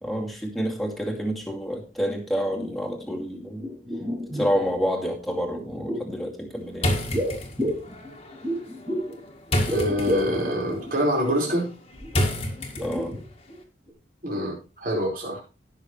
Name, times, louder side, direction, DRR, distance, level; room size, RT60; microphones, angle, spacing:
voice 1, 0.0-3.7 4.3-7.0 12.8-13.2, equal, ahead, -1 dB, 2.3 m, -28 dB
sound 1, 2.1-2.2 2.4-3.3 3.6-4.7 5.5-6.2 7.1-9.2 9.5-11.6 12.0-12.1 12.6-13.6 13.9-14.0, equal, 20° right, 2.5 m, -31 dB
sound 2, 6.8-13.3, left 1 dB, 30° left, 1.9 m, -30 dB
voice 2, 9.7-11.7 14.2-15.4, equal, 45° right, -1 dB, 4.7 m, -26 dB
17.5 x 6.6 x 3.2 m, 0.32 s
head